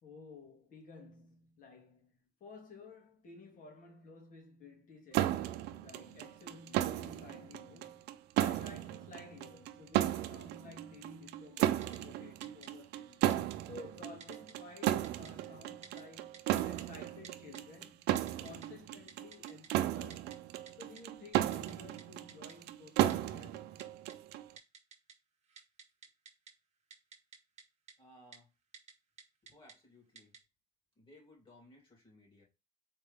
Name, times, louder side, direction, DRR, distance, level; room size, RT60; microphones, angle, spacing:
voice 1, 0.0-8.1 8.4-13.3 13.7-18.0 18.4-20.3 20.7-23.8, left 3 dB, 50° left, 2.2 m, -54 dB
sound 1, 5.1-24.5, right 13 dB, 85° right, 0.4 m, -35 dB
Typing, 11.8-12.0 12.4-12.7 13.3-13.4 14.2-14.5 14.8-15.3 15.8-16.0 16.3-16.8 17.2-17.6 18.2-18.7 19.1-19.7 20.1-20.4 20.7-20.8 21.0-21.1 21.3-21.7 22.0-22.1 22.3-22.6 23.1-23.2 23.8-24.2 24.6-25.1 25.4-26.5 26.9-27.6 27.9-28.0 28.3-28.4 28.7-28.9 29.2-29.7 30.2-30.4, right 6 dB, 40° right, 1.2 m, -52 dB
voice 2, 28.0-28.5 29.4-30.4 31.0-32.4, left 1 dB, 30° left, 3.0 m, -60 dB
4.4 x 3.3 x 3.4 m
cardioid pair, 110°, 17 cm